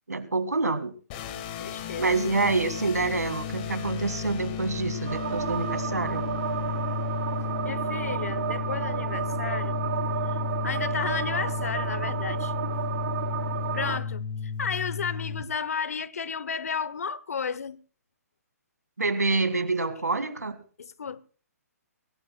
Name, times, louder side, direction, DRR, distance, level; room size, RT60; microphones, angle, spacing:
voice 1, 0.1-0.9 2.0-6.3 19.0-20.6, right 3 dB, 85° right, 1.9 m, -27 dB
sound 1, 1.1-15.4, left 6 dB, 30° left, 1.8 m, -33 dB
voice 2, 1.6-2.4 7.6-9.8 10.3-10.4 10.6-12.5 13.7-17.8 20.8-21.2, left 6 dB, 65° left, 0.9 m, -33 dB
sound 2, 5.1-14.0, right 9 dB, 50° right, 0.8 m, -32 dB
25.0 x 17.0 x 2.3 m
figure-of-eight pair, 130°, 9 cm